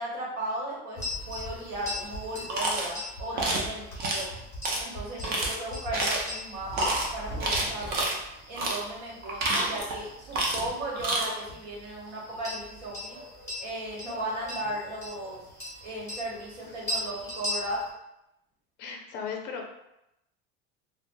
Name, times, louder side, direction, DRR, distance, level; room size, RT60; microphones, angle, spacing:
voice 1, 0.0-4.3 4.8-8.1 8.5-13.2 13.6-15.4 15.8-17.8, right 1 dB, 65° right, -4 dB, 1.1 m, -36 dB
sound 1, 0.9-17.9, left 1 dB, 10° left, 0.9 m, -40 dB
sound 2, 2.5-2.9 3.4-3.7 4.0-4.2 4.6-4.8 5.2-5.5 5.9-6.3 6.7-7.0 7.4-8.1 8.6-8.8 9.2-10.0 10.3-10.7 10.9-11.3, right 2 dB, 30° right, 0.5 m, -28 dB
voice 2, 3.3-3.7 10.4-10.6 18.8-19.6, left 6 dB, 35° left, 2 dB, 0.5 m, -38 dB
3.2 x 2.1 x 2.6 m, 0.87 s
cardioid pair, 160°, 30 cm